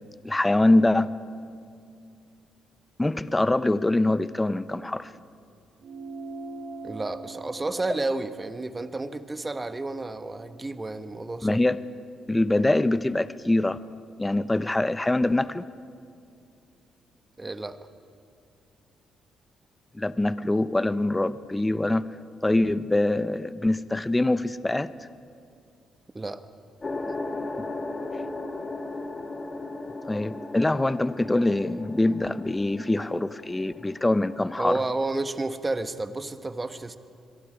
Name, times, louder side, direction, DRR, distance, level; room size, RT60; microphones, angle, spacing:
voice 1, 0.2-1.1 3.0-5.1 11.4-11.8 12.3-13.8 14.2-15.6 19.9-22.1 22.4-24.9 30.1-34.8, left 2 dB, 15° left, 15 dB, 0.6 m, -24 dB
sound 1, 5.8-10.6, right 3 dB, 60° right, 1.2 m, -43 dB
voice 2, 6.8-11.6 17.4-17.8 26.1-26.4 34.6-37.0, right 2 dB, 20° right, 10 dB, 1.1 m, -31 dB
sound 2, 26.8-35.5, left 2 dB, 30° left, 2.1 m, -37 dB
27.0 x 22.5 x 5.0 m, 2.4 s
cardioid pair, 90°, 0 cm